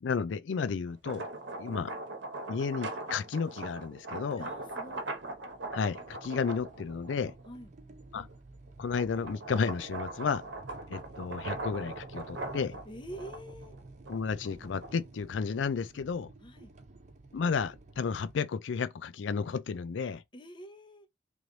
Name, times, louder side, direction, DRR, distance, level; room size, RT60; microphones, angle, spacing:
voice 1, 0.0-1.3 1.6-1.9 2.5-4.5 5.7-7.3 8.1-8.3 8.8-10.5 10.9-12.7 14.1-16.3 17.3-20.2, left 5 dB, 85° left, 0.4 m, -32 dB
sound 1, 0.9-7.5 8.0-15.2, right 2 dB, 80° right, 0.9 m, -41 dB
sound 2, 4.2-18.3, right 2 dB, 40° right, 0.8 m, -53 dB
voice 2, 4.4-5.1 7.5-7.7 12.8-13.8 16.4-16.7 20.3-21.1, equal, 25° left, 0.7 m, -46 dB
3.1 x 3.1 x 3.9 m
head